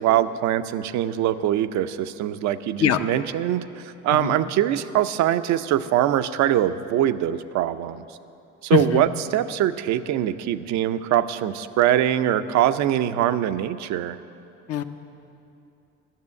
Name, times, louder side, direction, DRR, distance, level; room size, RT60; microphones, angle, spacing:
voice 1, 0.0-8.1 8.6-14.2, right 11 dB, 65° right, 12 dB, 0.6 m, -23 dB
voice 2, 8.7-9.0 14.7-14.8, left 10 dB, 50° left, 9 dB, 0.8 m, -22 dB
12.5 x 6.8 x 9.6 m, 2.7 s
supercardioid pair, 75°, 30 cm